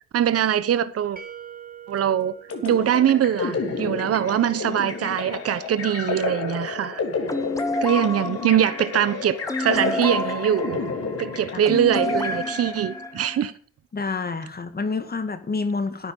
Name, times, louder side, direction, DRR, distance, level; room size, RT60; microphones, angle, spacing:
voice 1, 0.1-1.2 1.9-2.3 2.6-7.0 7.8-10.9 11.2-13.5, right 10 dB, 50° right, 0.9 m, -22 dB
sound 1, 1.2-4.0, right 8 dB, 30° right, 1.6 m, -44 dB
sound 2, 2.5-12.9, left 4 dB, 50° left, 3.3 m, -31 dB
sound 3, 7.3-13.5, left 2 dB, 10° left, 1.4 m, -30 dB
voice 2, 13.9-16.1, left 4 dB, 30° left, 1.9 m, -28 dB
12.0 x 9.7 x 5.3 m
cardioid pair, 90°, 30 cm